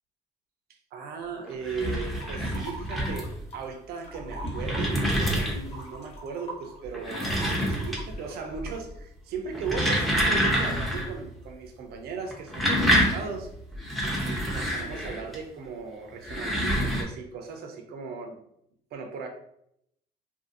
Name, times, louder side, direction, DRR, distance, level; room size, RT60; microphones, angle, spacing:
voice 1, 0.9-13.5 14.0-18.4 18.9-19.3, right 5 dB, 70° right, 4 dB, 0.6 m, -37 dB
sound 1, 1.5-3.4 4.1-5.8 6.8-8.2 8.5-9.0 9.4-11.1 11.4-11.5 12.3-15.4 16.1-17.0, equal, ahead, 0.8 m, -27 dB
sound 2, 2.2-3.7 4.0-8.4, right 2 dB, 40° left, 0.9 m, -43 dB
2.7 x 2.6 x 2.6 m, 0.74 s
cardioid pair, 110°, 17 cm